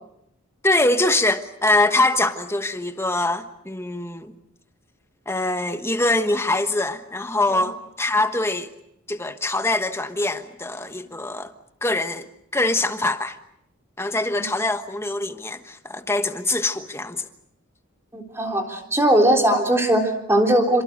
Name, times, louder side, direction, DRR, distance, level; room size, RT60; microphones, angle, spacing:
voice 1, 0.6-4.3 5.3-8.7 9.1-11.5 11.8-13.4 14.0-17.2, left 2 dB, 10° left, 1.2 m, -23 dB
voice 2, 18.1-20.8, right 1 dB, 10° right, 3.5 m, -19 dB
28.5 x 26.5 x 6.7 m
head